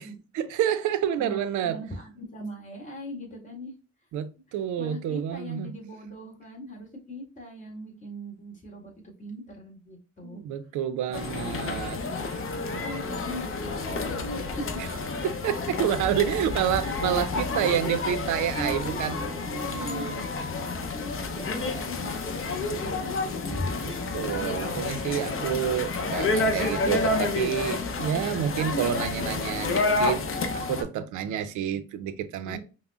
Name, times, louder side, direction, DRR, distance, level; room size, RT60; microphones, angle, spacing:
voice 1, 0.3-1.8 4.1-5.7 10.2-12.5 12.7-13.0 14.8-14.9 15.2-20.3 24.1-32.6, right 9 dB, 80° right, 0.5 m, -29 dB
voice 2, 1.2-3.7 4.8-10.4 11.1-11.5 12.3-14.8 16.0-16.1 17.3-17.9 18.5-20.1 20.9-23.7 32.4-32.6, equal, 25° left, 1.7 m, -40 dB
sound 1, 11.1-30.8, left 3 dB, 45° left, 0.7 m, -30 dB
5.4 x 2.1 x 2.3 m
cardioid pair, 90°, 30 cm